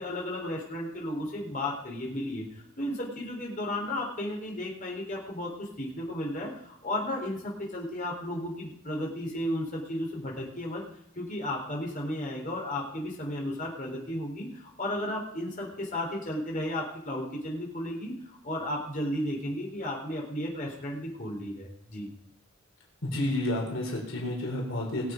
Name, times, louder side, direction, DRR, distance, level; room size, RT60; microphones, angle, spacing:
voice 1, 0.0-10.8 11.2-22.1, left 1 dB, 40° left, -2 dB, 3.6 m, -34 dB
voice 2, 23.0-25.1, left 1 dB, 70° left, 0 dB, 3.7 m, -30 dB
20.0 x 8.0 x 5.2 m, 0.71 s
head